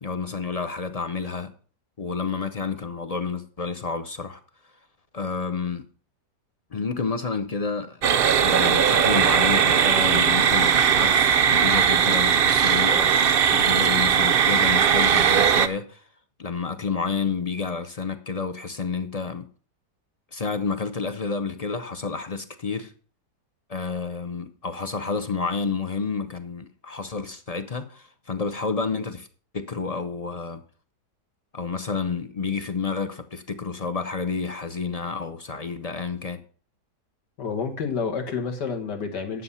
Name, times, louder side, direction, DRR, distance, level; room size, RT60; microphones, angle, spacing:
voice 1, 0.0-1.5 2.0-4.4 5.1-5.8 6.7-8.0 8.4-16.0 16.4-19.4 20.3-22.9 23.7-29.3 29.5-30.6 31.5-36.4, left 5 dB, 40° left, 0.5 m, -30 dB
sound 1, 8.0-15.7, right 8 dB, 70° right, 0.5 m, -19 dB
voice 2, 37.4-39.4, left 5 dB, 75° left, 2.3 m, -29 dB
10.5 x 7.5 x 5.6 m
omnidirectional pair, 1.8 m